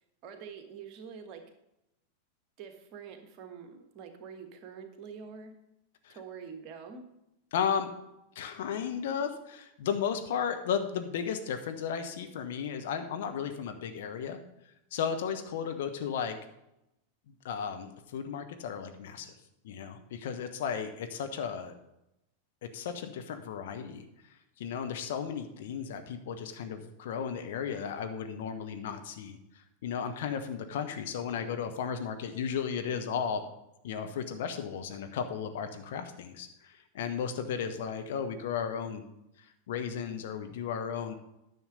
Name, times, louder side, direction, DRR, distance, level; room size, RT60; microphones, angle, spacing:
voice 1, 0.2-1.5 2.6-5.5 6.1-7.1, right 6 dB, 40° right, 6 dB, 1.3 m, -46 dB
voice 2, 7.5-7.9 8.3-14.4 14.9-16.4 17.4-19.3 19.6-21.7 22.7-24.1 24.6-29.4 29.8-33.4 33.8-39.0 39.7-41.1, left 7 dB, 55° left, 7 dB, 0.9 m, -34 dB
10.0 x 6.3 x 5.2 m, 0.87 s
figure-of-eight pair, 90°, 0 cm